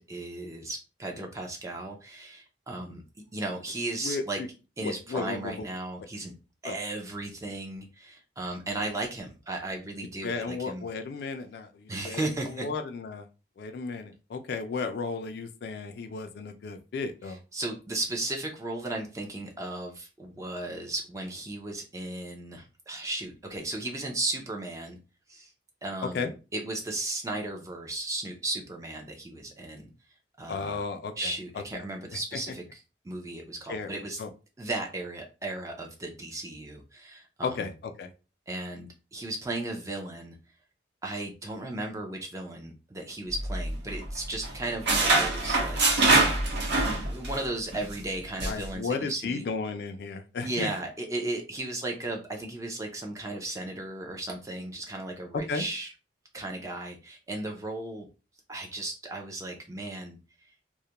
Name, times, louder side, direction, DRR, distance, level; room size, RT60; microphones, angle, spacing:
voice 1, 0.0-3.0 3.3-4.4 4.8-6.3 6.6-10.9 11.9-12.7 17.3-25.0 25.3-25.5 25.8-29.9 30.4-30.8 31.2-34.2 34.6-37.7 38.5-40.4 41.0-46.0 47.0-49.4 50.4-55.9 56.3-58.1 58.5-60.2, right 2 dB, 15° right, 1 dB, 0.4 m, -35 dB
voice 2, 4.0-4.5 4.8-5.5 6.6-6.7 10.2-13.3 13.6-17.4 26.1-26.3 30.5-31.3 31.7-31.8 33.7-33.9 34.2-34.3 37.4-37.7 38.0-38.1 48.5-50.7 55.5-55.6, left 4 dB, 55° left, 7 dB, 0.3 m, -34 dB
sound 1, 43.3-44.2 44.4-47.4 47.7-47.9 48.4-48.6, right 2 dB, 70° right, 0.8 m, -24 dB
2.3 x 2.1 x 2.8 m, 0.31 s
head